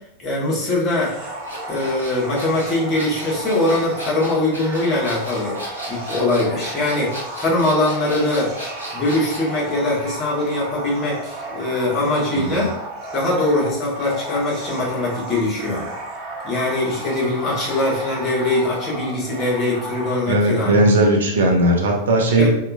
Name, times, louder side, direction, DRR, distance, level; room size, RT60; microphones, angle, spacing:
voice 1, 0.2-1.2 1.7-5.6 5.9-8.5 8.9-12.7 13.1-15.9 16.4-20.8 22.4-22.5, left 2 dB, 25° left, -5 dB, 1.1 m, -22 dB
sound 1, 1.0-20.2, right 1 dB, 35° right, 0.8 m, -33 dB
sound 2, 1.4-9.5, equal, 90° right, 1.0 m, -35 dB
voice 2, 20.3-22.5, right 1 dB, 65° right, 1 dB, 0.5 m, -17 dB
2.8 x 2.3 x 2.4 m, 0.82 s
figure-of-eight pair, 90°, 0 cm